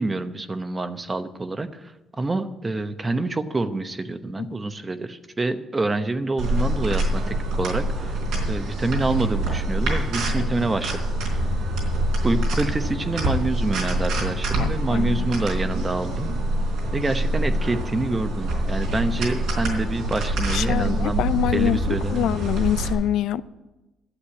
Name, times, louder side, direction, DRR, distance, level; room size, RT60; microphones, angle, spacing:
voice 1, 0.0-8.2 8.5-11.0 12.2-16.3 16.9-21.2 21.5-22.3, right 2 dB, 25° right, 0.9 m, -27 dB
sound 1, 6.4-22.9, right 1 dB, 85° right, 3.8 m, -25 dB
voice 2, 14.6-15.3 20.5-23.4, left 11 dB, 85° left, 0.4 m, -25 dB
11.5 x 8.0 x 8.3 m
cardioid pair, 90°, 0 cm